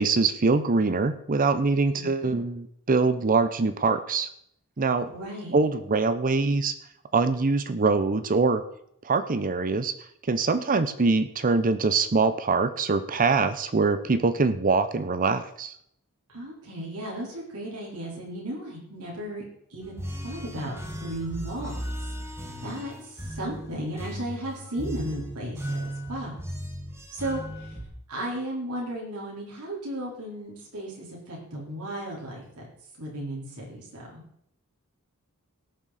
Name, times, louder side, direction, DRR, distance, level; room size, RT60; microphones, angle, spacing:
voice 1, 0.0-4.3 4.8-5.1 5.5-6.7 7.1-8.6 9.0-9.9 10.3-15.7, right 4 dB, 40° right, 11 dB, 0.6 m, -23 dB
voice 2, 1.9-2.4 5.0-5.6 16.3-19.4 19.7-21.8 22.6-26.4 27.1-27.8 28.1-32.7 33.0-34.2, right 1 dB, 90° right, -4 dB, 4.3 m, -35 dB
sound 1, 19.8-27.8, right 1 dB, 10° right, 1.8 m, -36 dB
18.0 x 7.3 x 4.2 m, 0.72 s
head